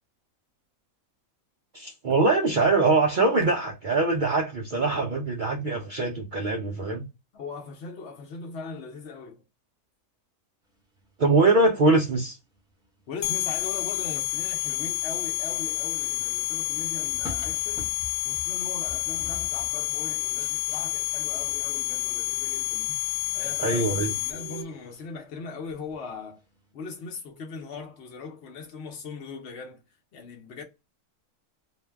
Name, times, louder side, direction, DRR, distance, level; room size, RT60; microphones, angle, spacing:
voice 1, 1.7-7.0 11.2-12.4 23.6-24.1, right 3 dB, 75° right, 0.4 m, -23 dB
voice 2, 7.3-9.4 13.1-17.9 18.2-22.9 23.3-23.8 24.2-26.4 26.7-29.8 30.1-30.6, left 4 dB, 55° left, 0.8 m, -40 dB
sound 1, 10.9-11.1 12.1-12.2 12.5-14.3 16.8-18.6 18.9-19.8 20.3-21.6 22.5-22.6 22.8-25.1 25.4-26.2 26.5-26.7, equal, 5° right, 0.4 m, -45 dB
sound 2, 13.2-24.6, left 14 dB, 85° left, 1.1 m, -29 dB
2.5 x 2.1 x 3.3 m
omnidirectional pair, 1.5 m